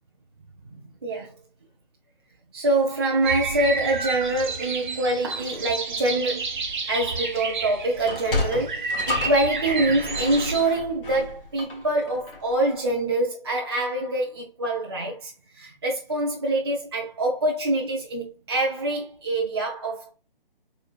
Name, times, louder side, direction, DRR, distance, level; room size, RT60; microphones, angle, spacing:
voice 1, 1.0-1.3 2.5-6.4 6.9-20.1, right 2 dB, 25° right, 0.5 m, -25 dB
sound 1, 3.2-10.6, right 4 dB, 55° right, 0.9 m, -30 dB
Sliding door, 7.9-12.6, left 2 dB, 65° left, 1.4 m, -32 dB
4.8 x 3.9 x 2.3 m
figure-of-eight pair, 150°, 29 cm